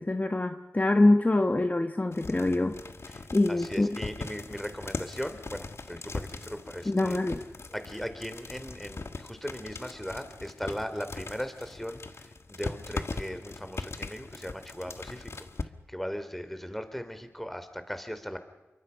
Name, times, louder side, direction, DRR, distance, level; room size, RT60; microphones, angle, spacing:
voice 1, 0.0-2.8 3.3-4.0 6.8-7.4, left 2 dB, 35° left, 7 dB, 1.4 m, -25 dB
sound 1, 2.1-15.6, left 3 dB, 60° left, 1.6 m, -40 dB
voice 2, 3.1-7.2 7.7-15.5 15.9-18.4, equal, 5° left, 9 dB, 3.2 m, -38 dB
26.5 x 23.5 x 5.8 m, 1.1 s
cardioid pair, 40°, 5 cm